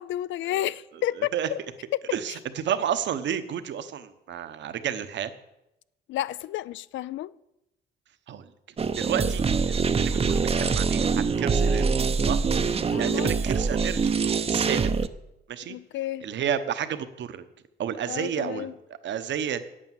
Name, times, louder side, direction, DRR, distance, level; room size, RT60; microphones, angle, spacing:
voice 1, 0.0-1.6 6.1-7.3 12.9-13.3 15.7-16.3 18.0-18.7, left 13 dB, 70° left, 0.4 m, -31 dB
voice 2, 1.2-1.5 2.1-5.3 8.3-8.5 9.0-14.9 15.5-15.8 16.2-17.4 17.8-18.8 19.0-19.6, right 9 dB, 65° right, 1.0 m, -31 dB
sound 1, 8.8-15.1, right 5 dB, 30° right, 0.6 m, -24 dB
8.7 x 8.7 x 7.3 m
cardioid pair, 90°, 20 cm